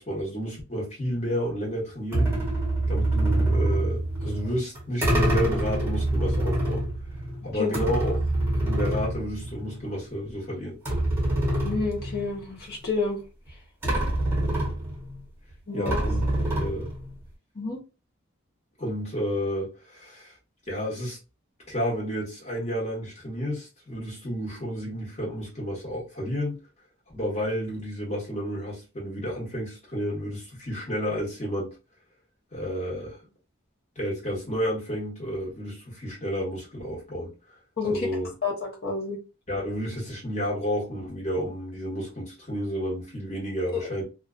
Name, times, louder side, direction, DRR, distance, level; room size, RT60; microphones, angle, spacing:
voice 1, 0.0-2.3 2.9-6.8 7.4-8.1 8.5-10.8 15.7-16.2 16.5-16.9 18.8-20.3 20.7-21.2 21.7-26.6 27.1-31.7 32.5-33.2 33.9-37.3 37.8-38.3 39.5-44.0, equal, 30° left, 1.2 m, -31 dB
sound 1, 2.1-9.9 10.3-10.4 10.8-12.5 13.5-13.6 13.8-15.2 15.9-17.1, right 1 dB, 10° right, 0.8 m, -26 dB
voice 2, 11.6-13.2 15.7-16.0 17.5-17.8 37.8-38.1 38.4-39.2 43.7-43.9, left 4 dB, 45° left, 0.8 m, -29 dB
2.5 x 2.3 x 2.4 m
head